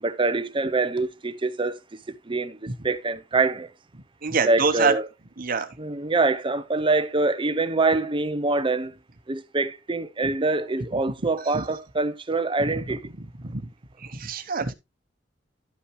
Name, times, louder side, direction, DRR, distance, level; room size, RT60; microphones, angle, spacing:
voice 1, 0.0-1.8 2.3-2.6 2.8-3.7 4.4-5.1 5.8-8.9 9.3-13.0, right 3 dB, 25° right, 0.7 m, -24 dB
voice 2, 4.2-4.9 5.4-5.7 11.5-11.6 13.4-13.7 14.0-14.7, right 5 dB, 50° right, 1.1 m, -25 dB
11.5 x 5.8 x 3.1 m
head